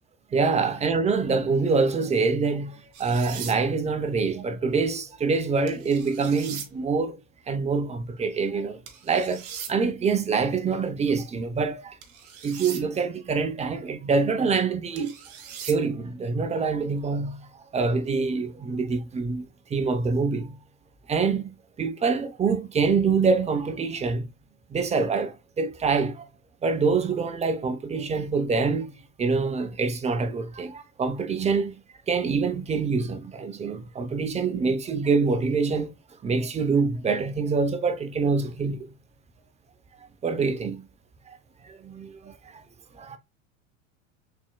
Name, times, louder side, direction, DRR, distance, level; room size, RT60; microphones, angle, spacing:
voice 1, 0.3-7.2 7.5-12.0 12.4-15.2 15.6-20.6 21.1-24.3 24.7-26.3 26.6-31.8 32.1-35.9 36.2-38.9 40.2-40.9 41.3-41.4 41.6-42.6 42.9-43.2, right 4 dB, 15° right, 0.6 m, -25 dB
sound 1, 2.9-3.6 5.7-6.7 8.9-9.7 12.0-12.8 15.0-15.8, right 8 dB, 60° right, 1.2 m, -39 dB
4.3 x 3.6 x 2.2 m
hypercardioid pair, 95°, 39 cm